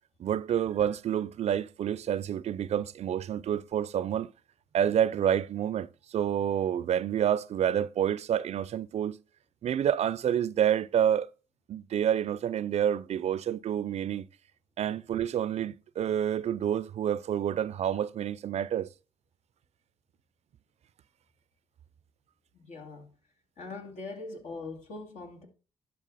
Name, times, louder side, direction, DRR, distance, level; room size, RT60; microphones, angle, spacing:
voice 1, 0.2-4.3 4.7-5.9 6.1-9.2 9.6-11.3 11.7-14.2 14.8-18.9, right 9 dB, 60° right, 0.4 m, -28 dB
voice 2, 22.5-23.1 23.6-25.5, left 3 dB, 70° left, 2.4 m, -41 dB
11.0 x 5.8 x 4.1 m
cardioid pair, 70°, 12 cm